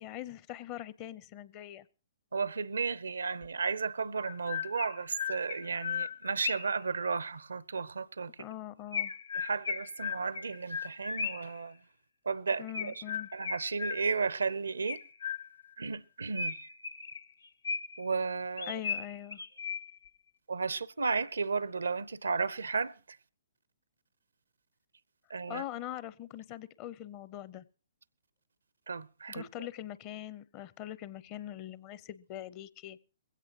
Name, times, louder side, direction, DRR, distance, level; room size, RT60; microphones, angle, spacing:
voice 1, 0.0-1.9 8.4-9.1 12.6-13.3 18.7-19.4 25.5-27.6 29.3-33.0, left 12 dB, 35° left, 0.7 m, -42 dB
voice 2, 2.3-8.4 9.3-11.8 12.3-13.0 13.3-15.0 15.8-16.6 18.0-18.8 20.5-23.2 25.3-25.6 28.9-29.5, right 4 dB, 90° right, 0.6 m, -34 dB
Chirp tweet, 3.4-3.5 4.2-6.8 8.9-11.6 12.7-14.3 14.9-15.7 16.3-18.1 18.6-20.1, left 6 dB, 80° left, 1.0 m, -37 dB
21.0 x 16.5 x 2.9 m
hypercardioid pair, 135°, 0 cm